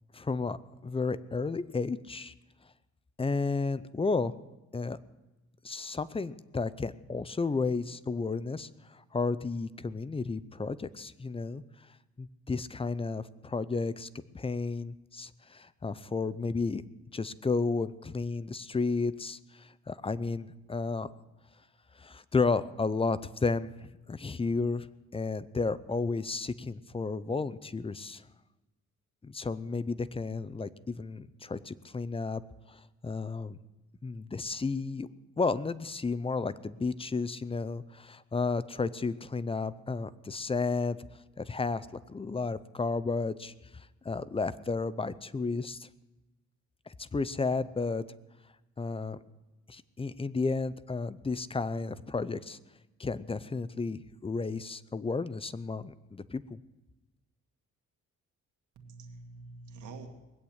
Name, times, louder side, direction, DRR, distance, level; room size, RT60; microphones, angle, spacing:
voice 1, 0.1-2.3 3.2-4.3 4.7-5.0 5.6-11.6 12.2-14.1 14.3-16.8 17.1-21.1 22.0-24.9 25.1-28.2 29.2-32.4 32.7-33.6 34.0-35.1 35.4-41.0 41.4-45.9 46.9-48.0 48.8-49.2 49.7-52.6 53.0-56.6, left 4 dB, 20° left, 16 dB, 0.6 m, -32 dB
voice 2, 58.8-60.1, right 3 dB, 85° right, 3 dB, 2.1 m, -47 dB
20.5 x 8.1 x 8.7 m, 1.1 s
cardioid pair, 110°, 29 cm